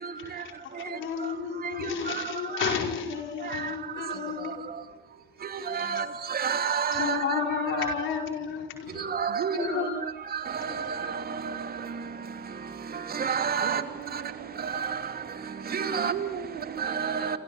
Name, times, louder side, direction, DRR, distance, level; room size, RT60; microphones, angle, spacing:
voice 1, 0.0-0.4 0.7-1.3 1.8-2.8 3.4-3.7 4.0-4.5 5.4-7.9 9.0-9.9 10.3-12.0 12.9-13.8 14.1-14.2 14.6-15.1 15.7-16.1 16.8-17.4, right 6 dB, 50° right, 2.9 m, -31 dB
voice 2, 0.8-4.6 7.0-9.0 9.6-9.9 10.7-11.1, left 7 dB, 80° left, 5.1 m, -32 dB
voice 3, 9.3-10.6 13.6-14.9 16.0-16.8, right 8 dB, 80° right, 1.9 m, -36 dB
28.5 x 26.5 x 7.3 m
cardioid pair, 90°, 20 cm